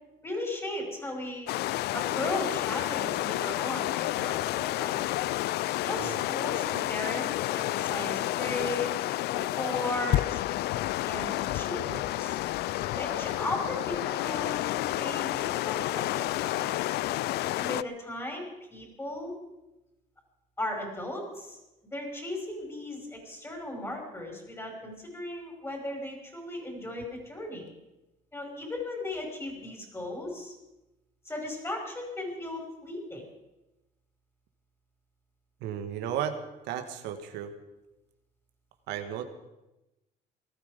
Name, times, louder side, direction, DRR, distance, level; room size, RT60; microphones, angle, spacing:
voice 1, 0.2-1.5 1.9-5.0 5.8-10.4 11.1-12.4 12.8-16.8 17.6-19.3 20.6-21.6 21.9-27.7 28.3-30.5 31.2-33.2, left 1 dB, 15° left, 1 dB, 5.9 m, -36 dB
sound 1, 1.5-17.8, left 16 dB, 75° left, 0.4 m, -30 dB
voice 2, 35.6-36.4 36.6-37.5 38.9-39.2, right 9 dB, 90° right, 7 dB, 1.6 m, -34 dB
19.5 x 13.5 x 5.3 m, 0.98 s
cardioid pair, 110°, 17 cm